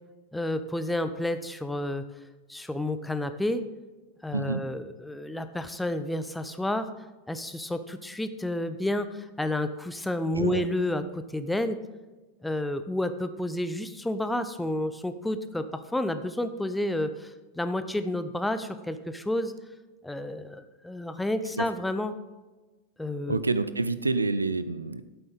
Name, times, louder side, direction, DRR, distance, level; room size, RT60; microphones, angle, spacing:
voice 1, 0.3-2.1 2.5-3.7 4.2-6.9 7.3-11.8 12.4-19.5 20.0-22.2 23.0-23.4, left 1 dB, 5° left, 11 dB, 0.7 m, -30 dB
voice 2, 4.3-4.6 10.3-10.6 21.6-21.7 23.3-25.0, right 3 dB, 80° right, 14 dB, 0.5 m, -28 dB
11.5 x 8.9 x 3.6 m, 1.2 s
figure-of-eight pair, 90°, 0 cm